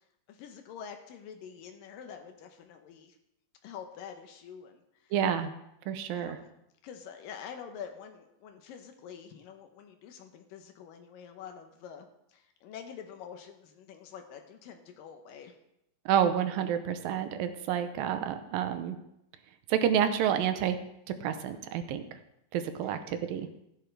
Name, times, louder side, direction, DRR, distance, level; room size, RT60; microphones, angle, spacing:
voice 1, 0.3-3.2 3.6-5.2 6.1-6.4 6.8-15.6 22.8-23.0, left 7 dB, 80° left, 5 dB, 2.5 m, -46 dB
voice 2, 5.1-5.5 5.9-6.4 16.1-19.0 19.7-20.8 21.2-22.1 22.5-23.5, right 9 dB, 80° right, 9 dB, 2.6 m, -29 dB
15.5 x 10.5 x 3.4 m, 0.81 s
omnidirectional pair, 4.1 m